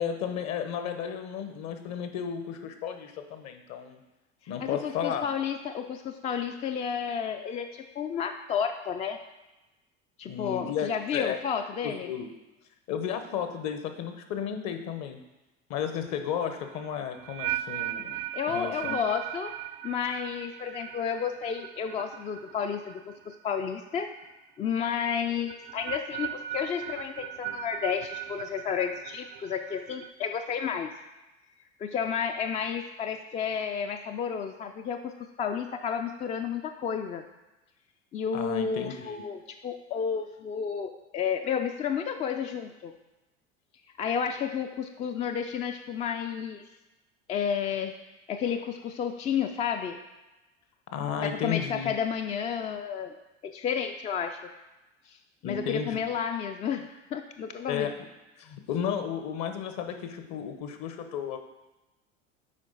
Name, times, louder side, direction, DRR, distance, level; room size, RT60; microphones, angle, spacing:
voice 1, 0.0-4.0 4.5-5.3 10.3-11.4 11.8-12.3 12.9-15.2 15.7-18.2 18.5-19.0 38.3-39.2 50.9-51.9 55.4-56.0 57.7-57.9 58.4-61.4, left 8 dB, 45° left, 7 dB, 0.9 m, -33 dB
voice 2, 4.6-9.2 10.2-12.1 18.3-19.5 19.8-24.1 24.6-30.9 31.8-35.1 35.4-37.2 38.1-42.9 44.0-46.6 47.3-47.9 48.3-50.0 51.2-53.1 53.4-54.5 55.1-55.2 55.4-57.9, left 7 dB, 20° left, 6 dB, 0.3 m, -31 dB
sound 1, 16.5-23.6 23.8-24.3 25.5-30.1, right 13 dB, 55° right, 0.4 m, -38 dB
7.6 x 4.9 x 3.9 m, 1.0 s
figure-of-eight pair, 70°, 37 cm